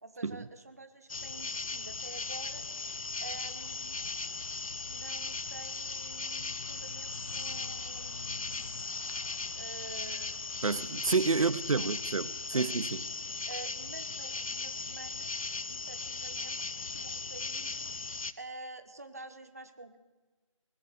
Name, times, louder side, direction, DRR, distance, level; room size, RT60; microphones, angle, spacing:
voice 1, 0.0-2.6 3.2-4.1 4.8-8.4 9.5-10.4 11.4-11.5 11.7-11.9 12.5-12.7 13.5-15.3 15.7-17.9 18.4-20.0, right 2 dB, 30° right, 0.7 m, -48 dB
sound 1, 1.1-18.3, left 4 dB, 80° left, 0.7 m, -38 dB
voice 2, 10.6-12.9, right 4 dB, 80° right, 0.6 m, -29 dB
19.5 x 6.8 x 7.9 m
figure-of-eight pair, 175°, 17 cm